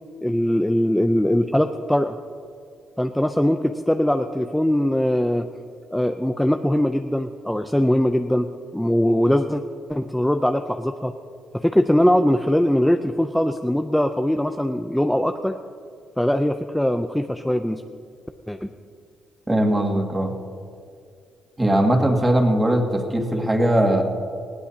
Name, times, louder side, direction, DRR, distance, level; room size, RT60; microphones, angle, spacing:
voice 1, 0.2-2.2 3.0-5.5 5.9-8.5 8.7-9.6 9.9-11.1 11.5-15.5 16.2-17.8 18.5-18.7, equal, 5° left, 6 dB, 0.5 m, -21 dB
voice 2, 19.5-20.3 21.6-24.0, right 1 dB, 15° right, 2 dB, 2.1 m, -20 dB
20.0 x 15.5 x 2.8 m, 2.4 s
cardioid pair, 90°, 0 cm